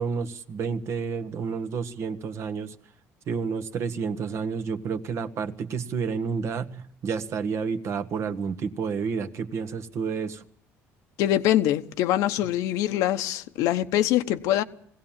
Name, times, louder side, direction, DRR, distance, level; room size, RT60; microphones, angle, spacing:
voice 1, 0.0-2.7 3.3-10.4, right 5 dB, 55° right, 1.4 m, -30 dB
voice 2, 11.2-14.6, left 13 dB, 80° left, 1.0 m, -24 dB
21.0 x 16.5 x 7.4 m
cardioid pair, 95°, 6 cm